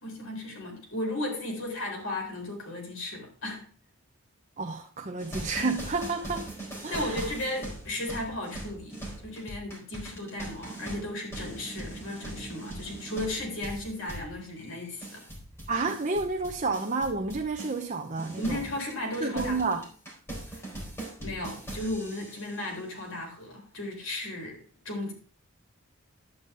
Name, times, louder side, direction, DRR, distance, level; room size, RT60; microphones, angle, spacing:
voice 1, 0.0-3.6 6.9-15.2 18.4-19.8 20.5-20.6 21.2-24.6 24.8-25.1, left 1 dB, 65° left, 4.2 m, -35 dB
voice 2, 4.6-6.5 6.8-7.3 15.7-18.6 19.2-19.8, right 3 dB, 35° right, 0.8 m, -30 dB
sound 1, 5.2-17.9 18.2-22.6, right 1 dB, 10° left, 4.3 m, -41 dB
11.0 x 9.0 x 3.7 m
head